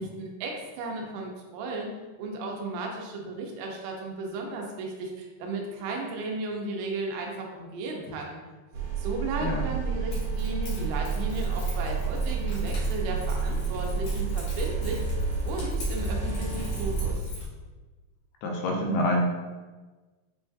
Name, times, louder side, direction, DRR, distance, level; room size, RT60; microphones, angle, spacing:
voice 1, 0.0-1.9 2.2-8.4 9.0-15.2 15.5-17.2, right 3 dB, 85° right, 0 dB, 2.8 m, -35 dB
sound 1, 8.7-17.1, right 7 dB, 70° right, 2.8 m, -30 dB
Keys jangling, 9.5-17.4, left 4 dB, 60° left, 2.3 m, -36 dB
voice 2, 18.4-19.5, equal, 80° left, 1 dB, 2.5 m, -27 dB
7.5 x 2.6 x 2.4 m, 1.3 s
omnidirectional pair, 4.7 m